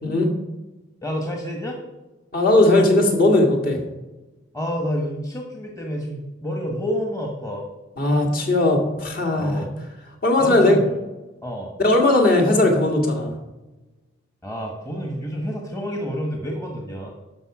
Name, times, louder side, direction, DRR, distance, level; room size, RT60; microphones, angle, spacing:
voice 1, 1.0-1.8 4.5-7.7 8.0-8.3 9.4-9.8 10.4-11.0 11.4-11.7 14.4-17.1, equal, 15° left, 1 dB, 1.3 m, -29 dB
voice 2, 2.3-3.8 8.0-9.6 10.2-10.8 11.8-13.3, left 2 dB, 45° left, 1 dB, 1.9 m, -18 dB
12.0 x 6.1 x 4.9 m, 1.1 s
head